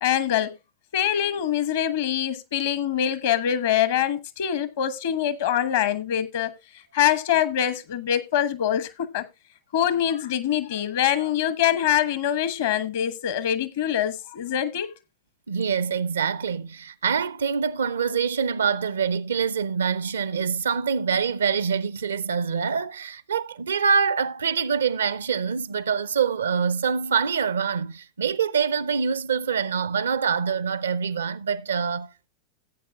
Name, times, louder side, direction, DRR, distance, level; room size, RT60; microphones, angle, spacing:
voice 1, 0.0-0.5 0.9-6.5 6.9-9.2 9.7-14.9, left 10 dB, 55° left, 1.1 m, -24 dB
voice 2, 15.5-32.3, right 6 dB, 70° right, 0.6 m, -25 dB
15.5 x 8.5 x 2.3 m
figure-of-eight pair, 90°, 0 cm